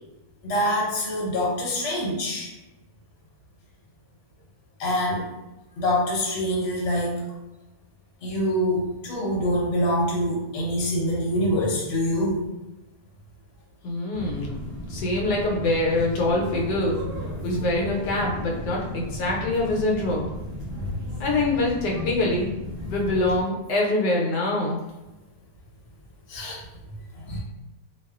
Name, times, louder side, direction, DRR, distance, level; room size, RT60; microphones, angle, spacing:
voice 1, 0.4-2.5 4.8-5.3 5.8-7.2 8.2-12.5 20.7-20.9 26.3-26.6 27.2-27.4, equal, 55° left, -4 dB, 1.0 m, -25 dB
voice 2, 13.8-17.0 17.4-20.3 21.2-22.5 22.9-24.8, left 2 dB, 80° left, -2 dB, 1.2 m, -25 dB
sound 1, 14.1-23.4, left 1 dB, 65° right, 0.3 m, -34 dB
2.6 x 2.3 x 2.3 m, 1.0 s
omnidirectional pair, 1.8 m